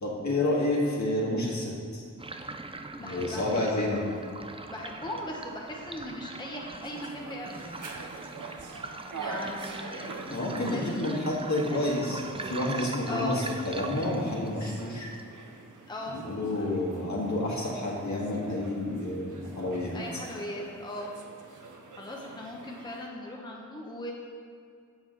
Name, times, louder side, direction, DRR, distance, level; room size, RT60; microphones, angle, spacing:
voice 1, 0.0-2.0 3.0-4.0 10.3-15.1 16.1-20.0, left 1 dB, 60° left, -3 dB, 1.7 m, -29 dB
sound 1, 2.2-15.2, right 3 dB, 20° right, 0.3 m, -42 dB
voice 2, 3.0-3.6 4.7-7.9 9.1-10.2 10.6-11.9 13.1-13.4 15.9-16.7 19.9-21.1 21.5-24.1, left 1 dB, 15° left, -2 dB, 0.8 m, -39 dB
sound 2, 6.8-23.1, right 3 dB, 70° right, 0.8 m, -45 dB
7.2 x 7.2 x 3.8 m, 2.3 s
wide cardioid pair, 95°, 32 cm